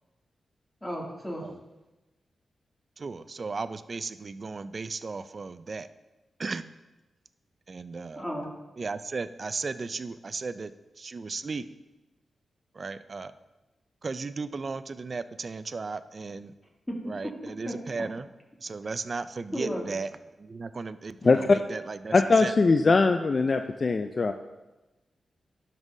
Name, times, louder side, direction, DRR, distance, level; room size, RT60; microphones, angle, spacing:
voice 1, 0.8-1.4 8.2-8.5 16.9-17.0 17.7-17.8 19.5-19.9, equal, 15° left, -3 dB, 2.4 m, -33 dB
voice 2, 3.0-5.9 6.4-6.6 7.7-8.2 8.8-10.7 11.0-11.6 12.7-13.3 14.0-16.6 17.0-18.3 18.6-20.1 20.4-22.5 22.8-23.0, right 4 dB, 50° right, 13 dB, 0.4 m, -35 dB
voice 3, 21.2-21.6 22.1-24.3, left 3 dB, 50° left, 7 dB, 0.3 m, -21 dB
12.5 x 5.4 x 2.7 m, 1.1 s
cardioid pair, 55°, 0 cm